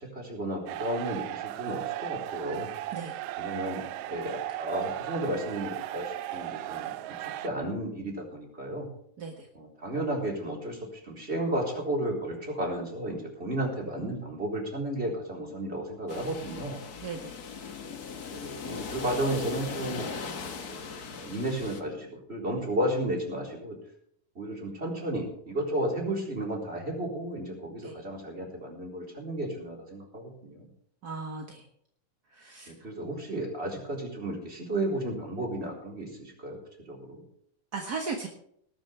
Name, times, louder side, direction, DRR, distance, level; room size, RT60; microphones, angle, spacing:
voice 1, 0.0-2.7 3.4-3.8 4.1-8.9 9.5-10.8 11.1-16.8 18.3-20.1 21.2-23.8 24.4-30.7 32.7-36.6 36.9-37.2, right 1 dB, 20° right, -1 dB, 4.1 m, -33 dB
sound 1, 0.7-7.5, right 14 dB, 80° right, 1.6 m, -36 dB
sound 2, 16.1-21.8, left 5 dB, 60° left, 0.9 m, -39 dB
voice 2, 17.0-17.3 27.8-27.9 31.0-31.6 32.3-32.7 37.7-38.3, right 4 dB, 40° right, 1 dB, 1.5 m, -36 dB
19.5 x 12.5 x 3.5 m, 0.68 s
omnidirectional pair, 3.8 m